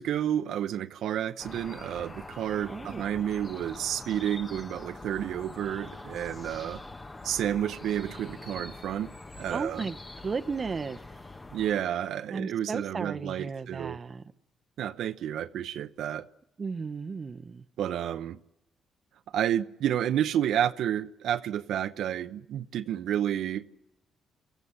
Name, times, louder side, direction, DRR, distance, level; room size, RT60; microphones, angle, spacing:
voice 1, 0.0-6.8 7.2-9.1 9.4-9.9 11.5-14.0 14.8-16.2 17.8-18.4 19.3-23.6, right 10 dB, 75° right, 0.8 m, -30 dB
sound 1, 1.4-11.8, left 2 dB, 20° left, 1.3 m, -44 dB
voice 2, 2.7-3.0 9.5-10.0 10.2-11.0 12.3-14.2 16.6-17.6, right 5 dB, 35° right, 1.0 m, -34 dB
27.5 x 14.5 x 9.8 m
cardioid pair, 90°, 0 cm